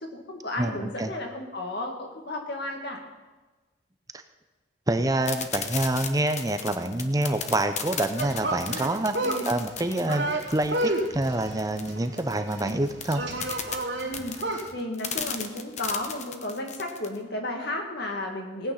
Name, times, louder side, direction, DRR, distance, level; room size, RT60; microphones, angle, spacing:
voice 1, 0.0-3.0 9.2-9.5 12.6-12.7 14.0-14.4 14.7-18.7, left 1 dB, 55° left, 2 dB, 2.1 m, -33 dB
voice 2, 0.6-1.1 4.9-9.1 9.5-13.2, right 1 dB, 15° right, 8 dB, 0.7 m, -27 dB
sound 1, 5.2-17.2, left 7 dB, 35° left, 0.9 m, -35 dB
sound 2, 8.2-14.7, right 1 dB, 65° right, 2.6 m, -31 dB
18.5 x 9.1 x 5.8 m, 1.2 s
head